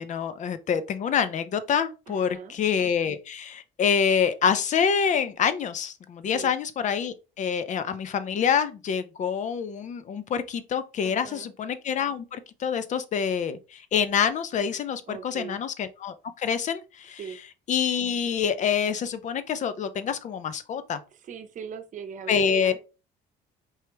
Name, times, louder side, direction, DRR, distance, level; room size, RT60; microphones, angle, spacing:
voice 1, 0.0-17.2 17.7-21.0 22.3-22.7, left 7 dB, 45° left, 0.6 m, -26 dB
voice 2, 2.1-2.5 6.3-6.5 11.0-11.5 15.1-15.6 17.2-17.4 21.1-22.8, right 7 dB, 50° right, 0.8 m, -39 dB
4.7 x 2.9 x 3.1 m
cardioid pair, 110°, 17 cm